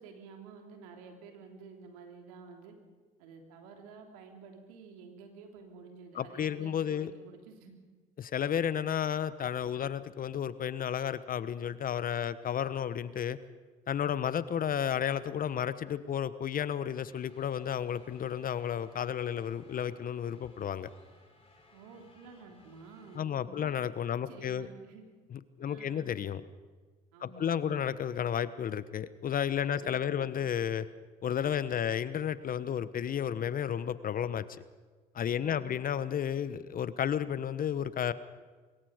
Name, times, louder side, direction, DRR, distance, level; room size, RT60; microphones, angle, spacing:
voice 1, 0.0-2.7 3.2-7.7 21.7-23.8 24.1-25.0 25.6-26.1 27.1-27.8 29.6-30.3 35.4-35.7, right 5 dB, 85° right, 3 dB, 3.2 m, -51 dB
voice 2, 6.1-7.1 8.2-13.4 13.9-20.9 23.1-24.7 25.3-26.4 27.2-30.9 31.2-34.6 35.1-38.1, left 9 dB, 50° left, 15 dB, 1.2 m, -32 dB
sound 1, 17.0-23.2, left 3 dB, 30° left, 6.7 m, -62 dB
24.5 x 22.0 x 5.1 m, 1.4 s
hypercardioid pair, 55°, 19 cm